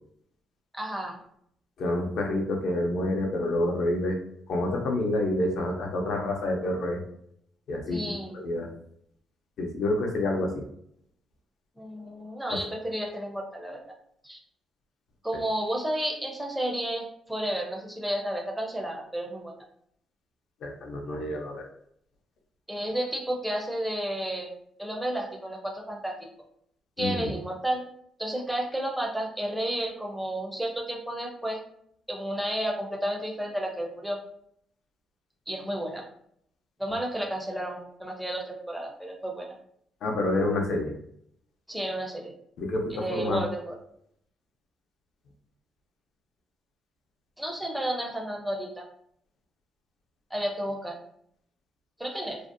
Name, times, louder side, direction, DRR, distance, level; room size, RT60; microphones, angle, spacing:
voice 1, 0.7-1.2 7.9-8.4 11.8-13.9 14.2-14.4 15.2-19.5 22.7-24.5 24.8-26.1 27.0-27.8 28.2-31.6 32.1-34.2 35.5-36.0 36.8-39.5 41.7-42.3 42.9-43.7 47.4-48.9 50.3-51.0 52.0-52.4, right 1 dB, 5° right, 0 dB, 0.4 m, -32 dB
voice 2, 1.8-4.2 4.5-7.0 7.7-8.0 8.3-8.7 9.6-10.6 15.3-15.4 20.6-21.7 27.0-27.3 40.0-40.9 42.6-43.4, left 1 dB, 60° left, 2 dB, 0.5 m, -28 dB
2.5 x 2.0 x 2.5 m, 0.70 s
cardioid pair, 165°, 0 cm